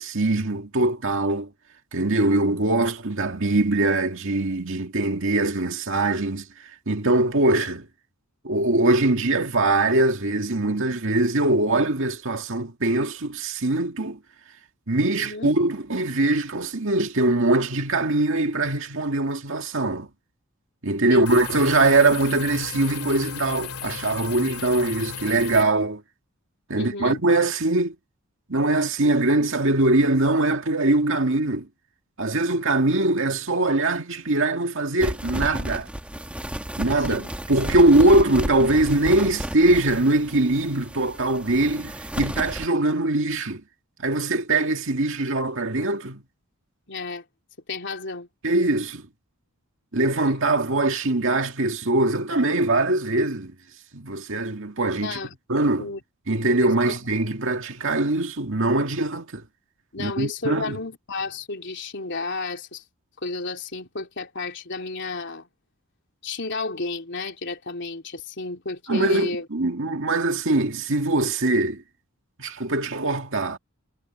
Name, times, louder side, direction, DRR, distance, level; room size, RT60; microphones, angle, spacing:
voice 1, 0.0-1.5 1.9-6.5 6.9-7.9 8.4-14.2 14.9-20.1 20.8-26.0 26.7-28.0 28.5-31.7 32.2-35.9 36.8-37.2 37.5-43.6 44.0-46.2 48.4-49.1 49.9-53.5 53.9-55.2 55.5-55.9 56.3-59.4 60.0-60.8 68.9-71.8 72.4-73.6, right 2 dB, 60° right, 2.2 m, -22 dB
voice 2, 15.1-15.5 21.1-21.4 26.7-27.2 37.1-37.3 46.9-47.2 47.7-48.3 55.0-55.3 55.8-56.0 56.4-57.0 59.9-62.8 63.2-65.5 66.2-69.5, left 3 dB, 55° left, 3.6 m, -32 dB
sound 1, 21.3-25.6, left 7 dB, 85° left, 2.3 m, -35 dB
sound 2, 35.0-42.7, equal, 5° right, 1.4 m, -32 dB
head